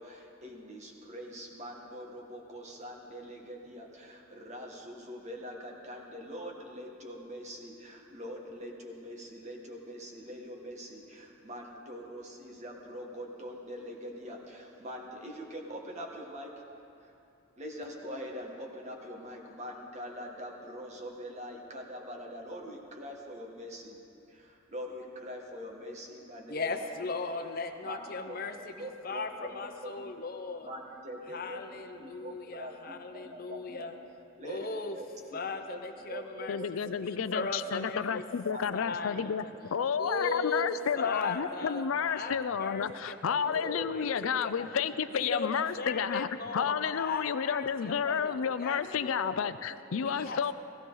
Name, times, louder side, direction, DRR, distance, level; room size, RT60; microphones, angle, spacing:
voice 1, 0.0-16.6 17.0-17.1 17.6-24.0 24.3-27.2 27.8-28.4 28.8-30.1 30.6-33.9 34.4-34.7 34.9-35.4 35.7-35.8 36.1-36.9 37.3-37.7 38.5-38.6 39.8-39.9 40.1-40.2 41.4-41.8 42.2-42.3 43.5-44.2 47.9-48.0 49.9-50.1, equal, 35° right, 0 dB, 1.6 m, -43 dB
voice 2, 26.5-28.7 29.0-30.7 31.3-33.9 34.4-34.9 35.3-36.6 37.0-38.2 38.7-39.3 40.0-40.7 41.0-44.3 44.6-44.7 45.1-45.5 45.8-49.5 50.0-50.4, left 3 dB, 45° left, 6 dB, 0.9 m, -37 dB
voice 3, 36.5-39.5 39.7-50.5, left 7 dB, 90° left, 13 dB, 0.5 m, -31 dB
16.5 x 15.5 x 4.0 m, 2.6 s
head